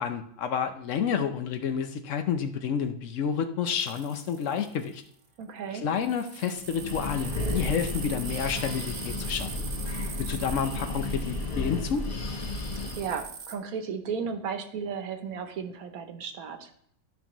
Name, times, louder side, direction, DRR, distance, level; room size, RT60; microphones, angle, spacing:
voice 1, 0.0-5.0 5.8-9.7 10.2-12.1, left 7 dB, 65° left, 8 dB, 1.0 m, -30 dB
sound 1, 3.8-5.0 6.0-13.6, right 6 dB, 75° right, 1.2 m, -42 dB
voice 2, 5.4-5.9 13.0-16.7, right 6 dB, 90° right, 7 dB, 1.3 m, -34 dB
Breathing, 6.6-13.2, left 2 dB, 30° left, 0.9 m, -33 dB
12.5 x 5.3 x 3.0 m, 0.68 s
omnidirectional pair, 1.5 m